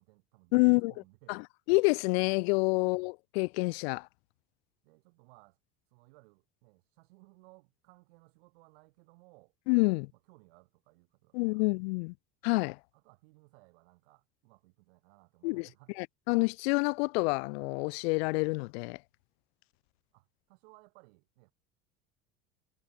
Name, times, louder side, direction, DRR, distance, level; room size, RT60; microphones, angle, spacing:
voice 1, 0.0-1.4 4.8-5.6 5.9-9.5 10.1-11.7 12.9-16.0 20.1-21.5, right 25 dB, 85° right, 7.2 m, -60 dB
voice 2, 0.5-0.9 1.3-1.4 1.7-4.1 9.7-10.1 11.3-12.1 12.4-12.8 15.4-15.7 16.0-19.0, left 29 dB, 85° left, 0.7 m, -28 dB
cardioid pair, 160°, 30 cm